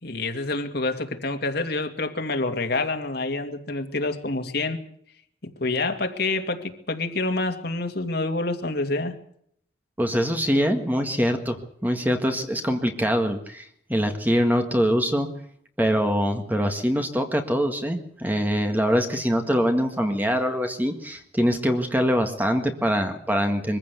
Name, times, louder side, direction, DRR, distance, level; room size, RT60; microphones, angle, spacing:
voice 1, 0.0-4.8 5.6-9.1, left 2 dB, 55° left, 5 dB, 2.4 m, -27 dB
voice 2, 10.0-11.6 11.8-15.3 15.8-23.8, equal, 10° right, 5 dB, 1.8 m, -23 dB
23.5 x 15.0 x 8.3 m, 0.70 s
head